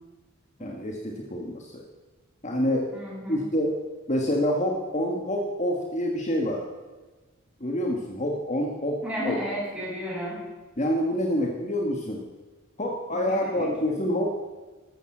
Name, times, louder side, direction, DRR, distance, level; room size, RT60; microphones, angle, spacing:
voice 1, 0.6-1.8 2.4-2.9 3.3-3.8 4.1-6.7 7.6-9.4 10.8-12.3 12.8-14.3, equal, 35° left, 1 dB, 1.6 m, -27 dB
voice 2, 2.9-3.5 9.0-10.4 13.1-13.7, left 1 dB, 5° right, -6 dB, 7.2 m, -33 dB
13.5 x 13.5 x 7.3 m, 1.3 s
head